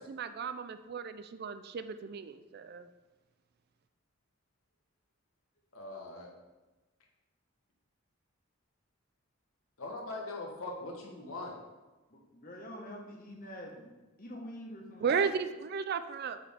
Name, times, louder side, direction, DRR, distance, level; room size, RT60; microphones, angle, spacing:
voice 1, 0.0-2.9 15.0-16.4, right 6 dB, 50° right, 11 dB, 0.3 m, -34 dB
voice 2, 5.7-6.3 9.8-11.5, left 2 dB, 75° left, -1 dB, 1.4 m, -41 dB
voice 3, 12.1-15.2, equal, 40° left, 0 dB, 1.2 m, -46 dB
8.2 x 4.5 x 3.6 m, 1.2 s
head